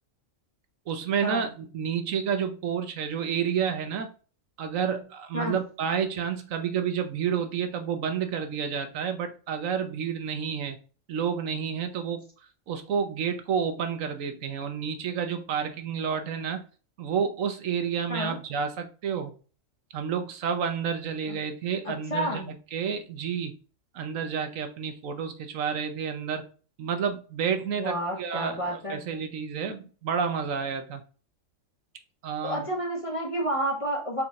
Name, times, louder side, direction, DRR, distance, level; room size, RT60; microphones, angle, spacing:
voice 1, 0.9-4.1 4.6-10.8 11.1-12.3 12.7-16.6 17.0-19.3 19.9-23.5 23.9-26.4 26.8-31.0 32.2-32.7, right 7 dB, 80° right, 7 dB, 1.2 m, -30 dB
voice 2, 21.8-22.5 27.8-29.0 32.4-34.2, equal, 25° left, -1 dB, 1.2 m, -30 dB
4.4 x 4.1 x 2.4 m, 0.37 s
omnidirectional pair, 1.4 m